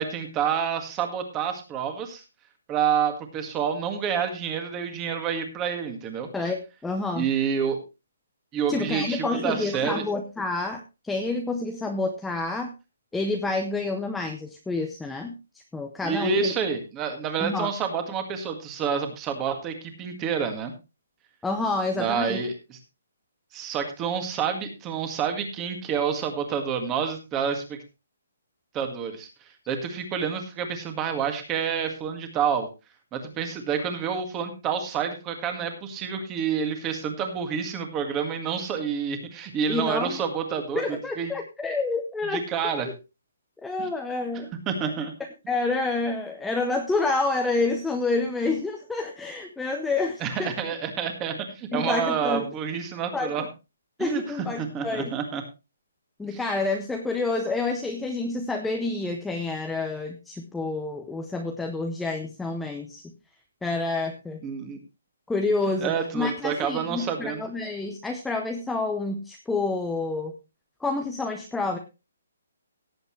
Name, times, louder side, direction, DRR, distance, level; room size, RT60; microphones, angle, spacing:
voice 1, 0.0-2.2 2.7-6.3 7.1-7.8 8.5-10.0 16.0-20.7 21.9-22.8 23.5-27.8 28.7-29.3 29.7-32.7 33.1-40.8 41.2-41.3 42.3-42.9 44.7-45.1 50.2-53.5 54.0-55.4 56.3-56.4 64.4-64.8 65.8-67.4, right 7 dB, 15° right, 6 dB, 1.9 m, -28 dB
voice 2, 6.8-7.3 8.7-12.7 13.1-15.3 15.7-16.5 17.4-17.7 21.4-22.4 39.7-40.2 40.7-42.9 43.6-44.5 45.5-50.5 51.7-52.5 53.1-53.5 54.0-55.1 56.2-63.0 63.6-64.4 65.3-70.3 70.8-71.8, left 3 dB, 5° left, 3 dB, 0.7 m, -28 dB
17.5 x 8.0 x 3.2 m, 0.28 s
hypercardioid pair, 175°, 0 cm